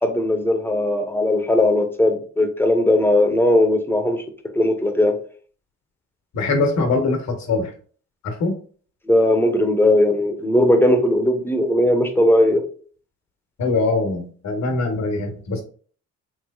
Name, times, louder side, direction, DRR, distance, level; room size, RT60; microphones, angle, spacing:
voice 1, 0.0-4.2 4.6-5.1 9.1-12.6, left 1 dB, 5° left, 0.7 m, -18 dB
voice 2, 6.3-7.7 8.2-8.6 13.6-15.6, left 3 dB, 65° left, 1.1 m, -22 dB
3.3 x 3.1 x 2.2 m
cardioid pair, 90°, 30 cm